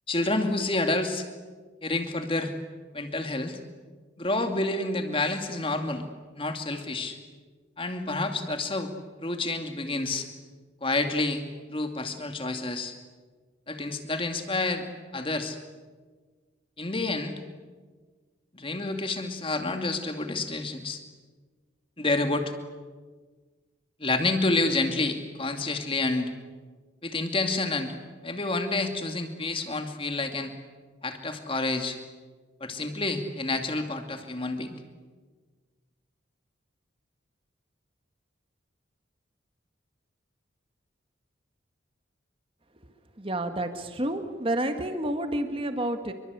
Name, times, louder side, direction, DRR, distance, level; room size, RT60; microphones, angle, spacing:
voice 1, 0.1-1.3 1.8-2.5 2.9-3.6 4.2-6.0 6.4-7.2 7.8-8.9 9.2-10.3 10.8-11.4 11.7-12.9 13.7-14.9 15.1-15.6 16.8-17.4 18.5-21.0 22.0-22.5 24.0-26.3 27.0-28.0 28.2-30.5 31.0-32.0 32.6-34.8, left 2 dB, 25° left, 6 dB, 2.3 m, -29 dB
voice 2, 43.2-46.1, right 1 dB, 30° right, 7 dB, 1.9 m, -29 dB
27.5 x 23.5 x 8.2 m, 1.4 s
head